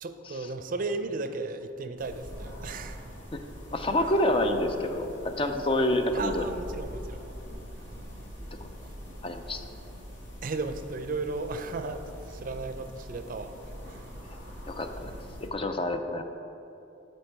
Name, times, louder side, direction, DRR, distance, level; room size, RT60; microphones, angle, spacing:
voice 1, 0.0-3.1 6.1-7.3 7.9-8.1 10.4-13.5 13.9-14.2 15.1-15.2, right 3 dB, 50° right, 8 dB, 0.4 m, -35 dB
sound 1, 2.0-15.5, equal, 85° left, 1.6 m, -43 dB
voice 2, 3.7-6.4 8.6-8.7 9.2-9.6 14.3-14.4 14.7-15.2 15.5-16.2, left 1 dB, 30° left, 6 dB, 0.4 m, -27 dB
11.0 x 4.5 x 4.6 m, 2.9 s
head